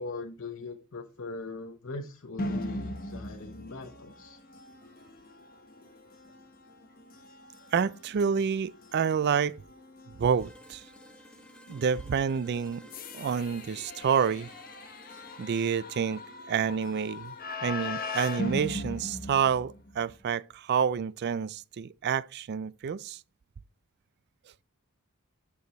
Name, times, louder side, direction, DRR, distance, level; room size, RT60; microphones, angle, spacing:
voice 1, 0.0-4.4, left 3 dB, 60° left, 0.8 m, -40 dB
sound 1, 2.4-20.1, left 2 dB, 40° left, 1.2 m, -40 dB
voice 2, 7.7-9.6 10.2-10.8 11.7-12.8 13.1-14.5 15.4-16.2 16.5-17.3 17.6-23.2, right 7 dB, 50° right, 0.3 m, -28 dB
sound 2, 10.3-18.1, equal, 5° left, 0.6 m, -56 dB
9.3 x 4.8 x 4.1 m
head